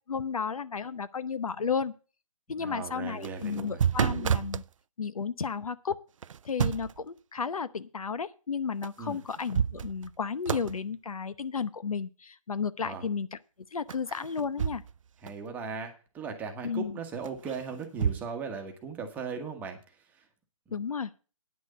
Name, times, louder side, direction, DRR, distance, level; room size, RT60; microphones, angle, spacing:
voice 1, 0.1-1.9 2.5-4.6 5.0-6.0 6.4-13.4 13.7-14.8 16.6-17.0 20.7-21.1, left 6 dB, 85° left, 15 dB, 0.9 m, -33 dB
voice 2, 2.6-3.8 9.0-9.2 12.8-13.1 15.2-20.3 20.7-20.8, right 5 dB, 10° right, 4 dB, 1.2 m, -38 dB
sound 1, 3.1-4.7 6.2-7.0 8.8-8.9 9.3-10.2 10.5-10.8 13.9-15.0 15.3-15.4 17.2-18.2, right 8 dB, 65° right, 0.4 m, -30 dB
9.7 x 6.3 x 7.9 m, 0.37 s
hypercardioid pair, 155°, 18 cm